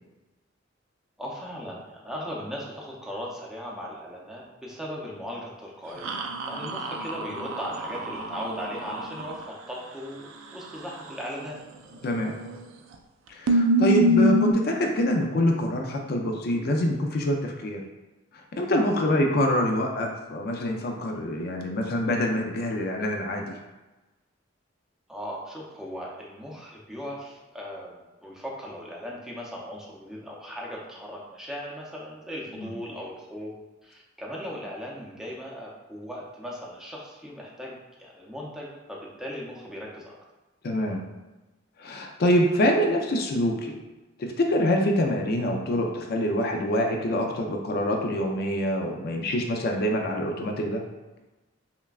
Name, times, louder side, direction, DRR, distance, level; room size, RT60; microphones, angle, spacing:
voice 1, 1.2-11.6 18.9-19.2 25.1-33.5 33.8-40.2, equal, 5° right, -4 dB, 0.6 m, -38 dB
sound 1, 6.0-9.4 12.2-12.6 12.9-13.0 13.5-14.5, equal, 85° right, 0.4 m, -25 dB
voice 2, 12.0-12.3 13.3-17.8 18.5-23.5 32.6-32.7 40.6-41.0 41.8-43.8 44.2-50.8, left 1 dB, 50° left, 2 dB, 0.4 m, -25 dB
5.6 x 2.2 x 2.4 m, 1.1 s
head